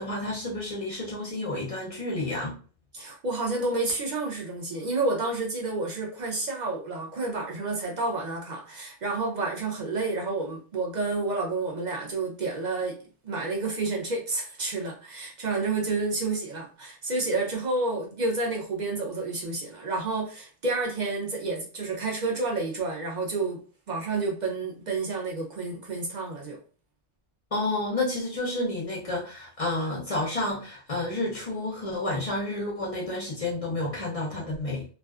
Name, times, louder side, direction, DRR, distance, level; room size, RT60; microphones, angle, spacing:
voice 1, 0.0-2.6 27.5-34.9, left 2 dB, 45° left, 0.4 m, -30 dB
voice 2, 2.9-13.0 13.2-23.6 23.9-26.6, right 3 dB, 55° right, 0.5 m, -30 dB
2.4 x 2.3 x 2.3 m
omnidirectional pair, 1.4 m